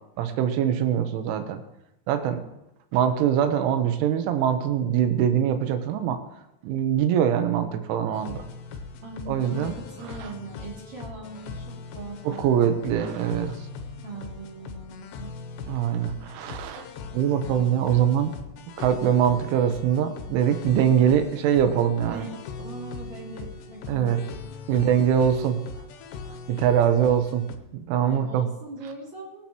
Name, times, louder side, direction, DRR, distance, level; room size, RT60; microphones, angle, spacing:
voice 1, 0.2-1.6 2.1-2.4 2.9-6.2 6.6-8.4 9.3-9.8 12.3-13.6 15.7-16.9 17.1-18.3 18.8-22.3 23.9-24.2 24.7-25.6 26.5-27.5 27.9-28.5, right 9 dB, 80° right, 7 dB, 3.4 m, -23 dB
sound 1, 8.1-27.6, left 5 dB, 75° left, 2.7 m, -40 dB
voice 2, 9.0-13.0 14.0-15.3 16.0-16.1 22.0-24.8 28.0-29.5, right 3 dB, 40° right, -4 dB, 3.5 m, -41 dB
24.0 x 8.6 x 3.1 m, 0.91 s
omnidirectional pair, 5.7 m